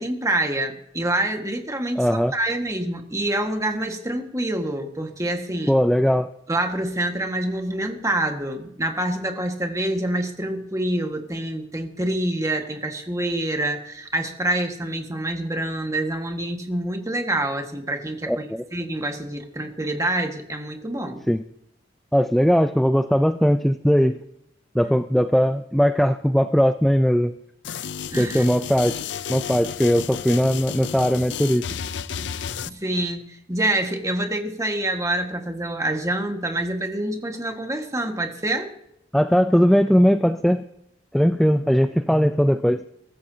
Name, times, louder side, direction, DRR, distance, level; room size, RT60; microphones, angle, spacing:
voice 1, 0.0-2.0 2.3-5.8 6.5-18.4 18.7-21.2 28.1-28.5 32.7-38.7, right 1 dB, 20° right, 4 dB, 1.6 m, -26 dB
voice 2, 2.0-2.3 5.7-6.3 18.3-18.6 21.3-21.4 22.1-24.2 24.7-27.3 28.2-29.0 29.3-31.6 39.1-40.6 41.1-42.8, equal, ahead, 9 dB, 0.4 m, -19 dB
sound 1, 27.6-32.7, left 7 dB, 80° left, 0.6 m, -32 dB
23.0 x 14.0 x 2.8 m, 0.78 s
head